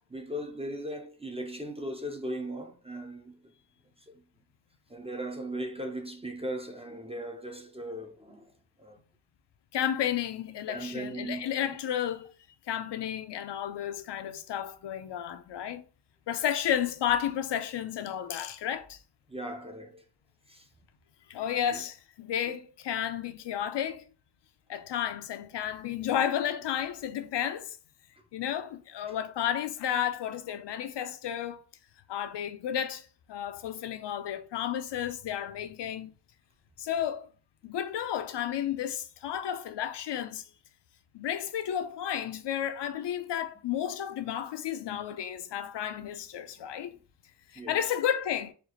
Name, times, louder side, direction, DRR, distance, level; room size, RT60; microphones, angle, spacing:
voice 1, 0.1-3.3 4.1-4.2 4.9-8.5 8.8-9.0 10.7-11.8 19.3-20.0 20.5-20.7 21.7-21.8 28.2-28.3 29.1-29.2 46.6-46.7 47.6-47.8, right 1 dB, 15° right, 0.4 m, -38 dB
voice 2, 9.7-12.3 12.7-15.8 16.3-19.0 21.3-24.1 24.7-27.8 28.3-31.6 32.1-36.1 36.8-37.3 37.6-40.4 41.1-46.9 47.5-48.5, left 10 dB, 80° left, 0.5 m, -32 dB
4.2 x 2.4 x 2.8 m
wide cardioid pair, 145°, 42 cm